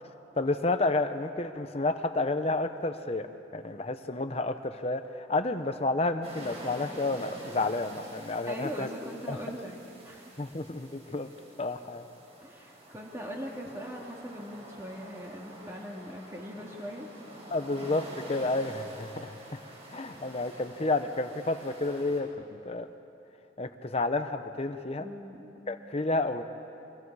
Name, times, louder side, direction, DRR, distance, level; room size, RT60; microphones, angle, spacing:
voice 1, 0.4-3.3 3.5-8.9 9.3-9.4 10.4-11.3 11.6-12.0 17.5-19.4 19.9-22.9 23.6-25.1 25.7-26.4, left 2 dB, 35° left, 9 dB, 0.8 m, -30 dB
sound 1, 6.2-22.2, right 1 dB, 35° right, 5.1 m, -48 dB
voice 2, 8.4-9.8 10.0-10.4 12.4-17.5 25.0-25.5, equal, 15° right, -2 dB, 2.2 m, -41 dB
29.0 x 25.5 x 4.8 m, 2.9 s
head